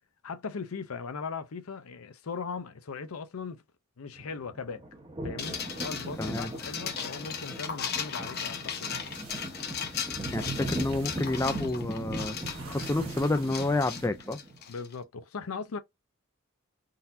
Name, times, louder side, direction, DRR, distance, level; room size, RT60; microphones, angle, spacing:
voice 1, 0.2-3.6 4.0-4.8 5.2-9.0 14.7-15.8, left 5 dB, 80° left, 0.6 m, -39 dB
sound 1, 4.1-14.5, right 1 dB, 20° right, 0.9 m, -39 dB
sound 2, 5.4-14.9, left 7 dB, 50° left, 0.8 m, -37 dB
voice 2, 6.2-6.5 10.3-14.4, left 2 dB, 15° left, 0.3 m, -29 dB
sound 3, 9.1-14.1, right 5 dB, 70° right, 1.0 m, -51 dB
3.9 x 2.7 x 2.6 m
head